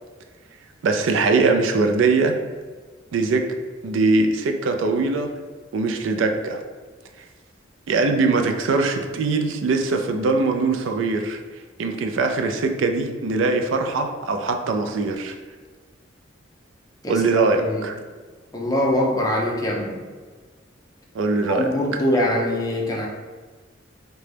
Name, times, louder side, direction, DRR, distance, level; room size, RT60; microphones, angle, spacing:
voice 1, 0.8-2.4 3.1-3.5 3.8-5.3 5.7-6.6 7.9-11.4 11.8-15.3 17.1-18.0 21.1-21.7, right 3 dB, 85° right, 5 dB, 0.4 m, -21 dB
voice 2, 18.5-20.0 21.5-23.1, left 1 dB, 20° left, -2 dB, 0.5 m, -23 dB
3.8 x 2.2 x 3.3 m, 1.4 s
head